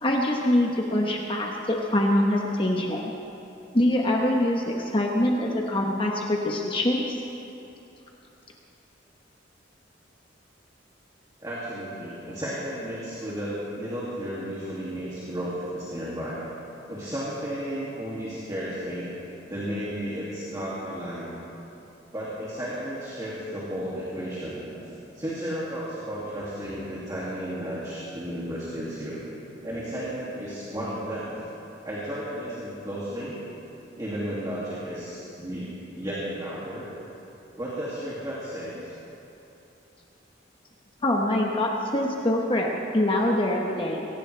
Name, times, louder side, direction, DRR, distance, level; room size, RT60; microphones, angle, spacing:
voice 1, 0.0-3.0 3.7-7.2 41.0-44.1, left 1 dB, 25° left, 0 dB, 1.1 m, -24 dB
voice 2, 11.4-16.4 16.9-19.1 19.5-21.3 22.1-29.4 29.6-31.3 31.8-33.4 34.0-35.7 35.9-36.9 37.6-38.9, equal, 20° right, -8 dB, 2.5 m, -33 dB
22.5 x 18.0 x 3.4 m, 2.9 s
head